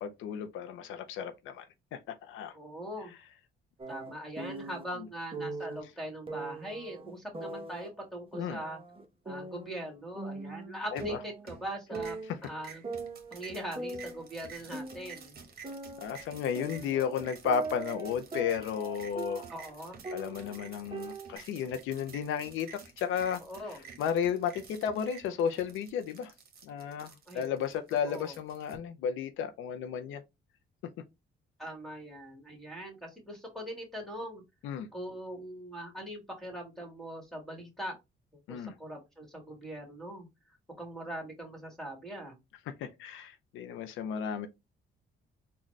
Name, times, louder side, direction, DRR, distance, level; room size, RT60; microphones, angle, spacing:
voice 1, 0.0-1.6 1.9-2.5 8.4-8.6 10.9-11.2 16.0-19.5 20.1-23.4 24.0-26.3 26.6-30.2 34.6-34.9 38.5-38.7 42.8-44.5, left 8 dB, 85° left, 0.5 m, -33 dB
voice 2, 2.5-3.1 3.9-8.8 9.3-12.2 12.4-12.8 13.3-15.4 19.5-20.1 23.4-24.0 27.3-27.5 28.1-28.3 31.6-34.4 34.9-37.9 38.5-40.3 40.8-42.4, right 1 dB, ahead, 1.8 m, -41 dB
sound 1, 3.8-4.8 5.3-5.8 6.3-7.9 8.3-9.9 10.2-11.7 11.9-12.4 12.8-15.3 15.6-19.7 20.0-21.4, right 3 dB, 25° right, 0.9 m, -41 dB
sound 2, 11.0-11.7 11.9-28.8, right 5 dB, 50° right, 1.1 m, -51 dB
4.0 x 2.3 x 3.1 m
cardioid pair, 90°, 20 cm